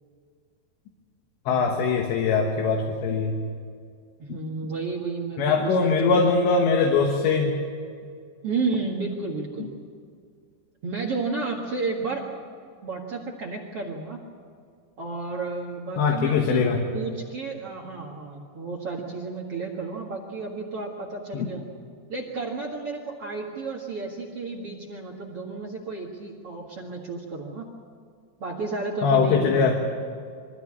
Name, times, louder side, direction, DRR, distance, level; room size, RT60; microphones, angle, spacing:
voice 1, 1.5-3.4 5.4-7.6 16.0-16.8 21.3-21.5 29.0-29.7, left 4 dB, 75° left, 2 dB, 3.6 m, -22 dB
voice 2, 4.2-6.2 8.4-9.7 10.8-12.2 12.8-14.2 15.0-16.6 16.9-21.6 22.1-27.6 28.4-29.7, right 3 dB, 50° right, 1 dB, 1.7 m, -32 dB
23.0 x 15.5 x 8.7 m, 2.2 s
omnidirectional pair, 5.3 m